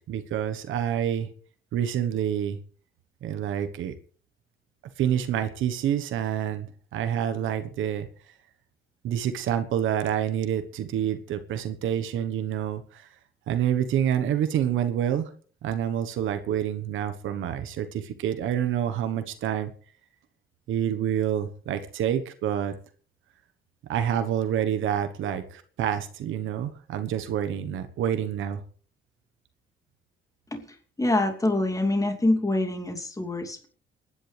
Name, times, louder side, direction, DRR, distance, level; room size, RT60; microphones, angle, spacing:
voice 1, 0.1-1.3 1.7-2.6 3.2-3.9 5.0-8.1 9.0-13.1 13.5-15.3 15.6-19.7 20.7-22.7 23.9-28.6, right 10 dB, 80° right, 9 dB, 1.2 m, -27 dB
voice 2, 31.0-33.7, left 2 dB, 15° left, 3 dB, 2.7 m, -25 dB
29.5 x 9.9 x 3.4 m, 0.44 s
cardioid pair, 90°, 20 cm